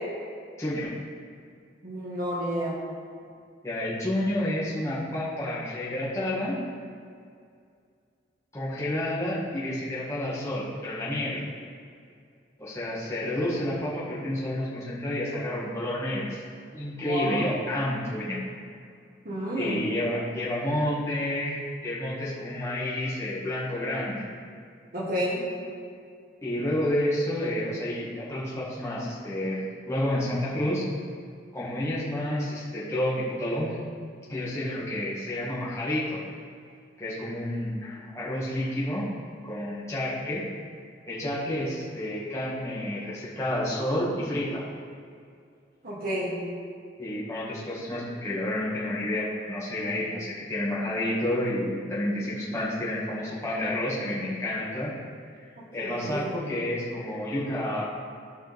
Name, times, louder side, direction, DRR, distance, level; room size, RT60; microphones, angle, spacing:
voice 1, 0.6-0.9 3.6-6.6 8.5-11.4 12.6-16.4 16.7-18.4 19.5-24.3 26.4-30.9 31.5-33.8 34.3-36.2 37.0-39.1 39.4-40.4 41.1-44.6 47.0-54.9 55.7-57.8, left 1 dB, 15° left, -8 dB, 2.0 m, -30 dB
voice 2, 1.8-2.8 17.1-17.4 19.2-19.8 24.9-25.4 45.8-46.4 55.8-56.4, equal, 50° right, -6 dB, 1.7 m, -30 dB
14.5 x 5.4 x 3.6 m, 2.3 s
head